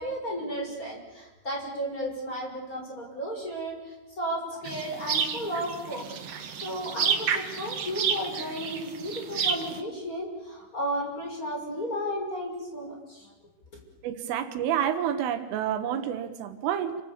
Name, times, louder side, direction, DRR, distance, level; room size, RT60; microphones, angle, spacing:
voice 1, 0.0-6.1 6.6-13.3, equal, 15° left, 0 dB, 6.5 m, -34 dB
sound 1, 4.6-9.8, right 7 dB, 65° right, 1.5 m, -30 dB
voice 2, 14.0-17.0, right 9 dB, 80° right, 9 dB, 3.9 m, -29 dB
29.5 x 25.5 x 7.3 m, 1.0 s
omnidirectional pair, 5.7 m